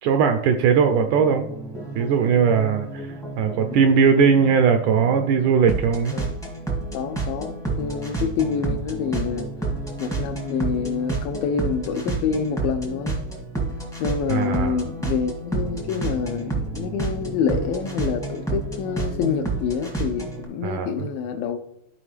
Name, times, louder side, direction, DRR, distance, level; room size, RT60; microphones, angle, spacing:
voice 1, 0.0-1.5 1.9-3.1 3.4-6.2 14.3-14.9 20.6-20.9, right 6 dB, 80° right, 6 dB, 1.9 m, -19 dB
sound 1, 0.8-20.4, right 3 dB, 5° left, 0.4 m, -30 dB
voice 2, 3.5-3.9 6.1-6.3 6.9-9.5 10.0-13.2 14.0-21.6, left 6 dB, 80° left, 5 dB, 2.4 m, -27 dB
13.0 x 4.9 x 3.3 m, 0.77 s
omnidirectional pair, 4.1 m